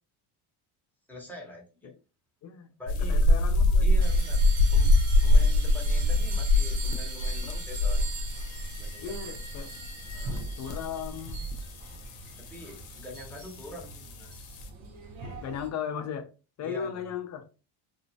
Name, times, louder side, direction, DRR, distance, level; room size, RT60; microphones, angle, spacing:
voice 1, 1.1-1.9 2.8-3.4 3.8-4.4 4.7-4.9 5.2-8.1 8.8-9.3 10.1-10.4 12.4-14.3 16.6-17.1, left 1 dB, 5° left, 0.8 m, -44 dB
voice 2, 2.4-2.7 3.1-3.8 9.0-9.7 10.6-11.4 15.4-16.3 16.6-17.4, left 7 dB, 40° left, 0.5 m, -36 dB
sound 1, 2.9-14.7, left 1 dB, 90° left, 0.8 m, -26 dB
sound 2, 4.0-15.7, right 4 dB, 75° right, 0.9 m, -42 dB
3.1 x 2.0 x 2.7 m
cardioid pair, 135°, 47 cm